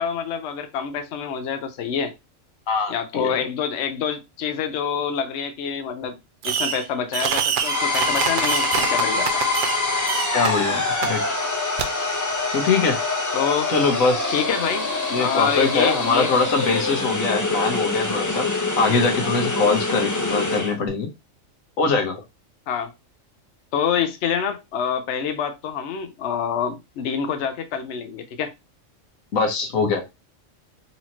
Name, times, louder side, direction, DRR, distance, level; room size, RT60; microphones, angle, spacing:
voice 1, 0.0-2.1 2.9-6.2 6.4-9.4 13.3-13.7 14.3-16.3 22.7-22.9 23.7-28.5, left 7 dB, 65° left, 0.8 m, -26 dB
voice 2, 2.7-3.3 10.3-11.2 12.5-13.0 13.7-14.4 15.1-18.5 18.8-21.1 21.8-22.2 29.3-30.1, left 4 dB, 80° left, 1.4 m, -22 dB
Fireworks, 6.4-6.9 7.1-9.8 10.0-10.5 11.0-11.1 11.8-11.9, right 8 dB, 65° right, 0.5 m, -25 dB
sound 1, 7.6-20.8, left 3 dB, 20° left, 0.6 m, -25 dB
4.1 x 2.9 x 2.8 m
omnidirectional pair, 1.4 m